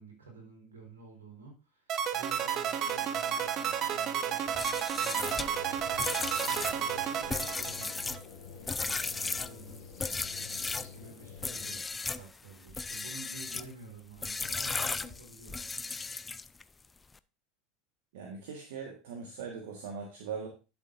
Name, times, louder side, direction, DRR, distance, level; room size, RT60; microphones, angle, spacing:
voice 1, 0.0-5.5 6.4-7.9 8.5-9.8 10.9-15.8, right 2 dB, 85° right, -1 dB, 4.1 m, -51 dB
sound 1, 1.9-8.2, right 9 dB, 45° right, 1.1 m, -32 dB
sound 2, 4.5-10.9 11.4-12.3 12.7-13.7 14.2-16.6, left 4 dB, 15° left, 0.4 m, -36 dB
sound 3, 5.1-11.8, left 6 dB, 60° left, 2.8 m, -49 dB
voice 2, 18.1-20.5, right 6 dB, 65° right, 2 dB, 1.6 m, -40 dB
11.5 x 7.4 x 2.6 m, 0.30 s
hypercardioid pair, 80°, 0 cm